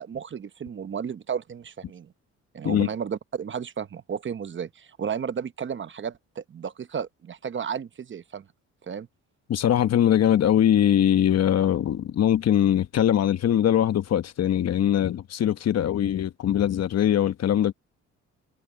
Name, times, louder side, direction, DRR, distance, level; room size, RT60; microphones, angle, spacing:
voice 1, 0.0-2.1 2.5-8.4 8.9-9.1, right 7 dB, 40° right, 1.0 m, -33 dB
voice 2, 9.5-17.7, left 10 dB, 55° left, 1.0 m, -22 dB
cardioid pair, 90°, 30 cm